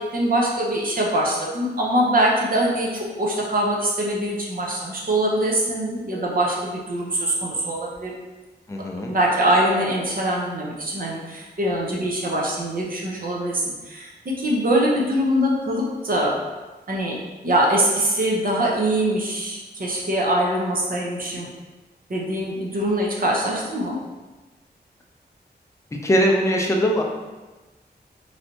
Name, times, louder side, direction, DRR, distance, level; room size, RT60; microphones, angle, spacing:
voice 1, 0.0-8.1 9.0-16.3 16.9-17.2 17.4-21.5 22.1-24.0, right 1 dB, 55° right, -3 dB, 0.6 m, -23 dB
voice 2, 8.7-9.1 26.0-27.0, equal, 15° left, 0 dB, 0.4 m, -20 dB
3.2 x 2.6 x 2.7 m, 1.2 s
wide cardioid pair, 100°, 18 cm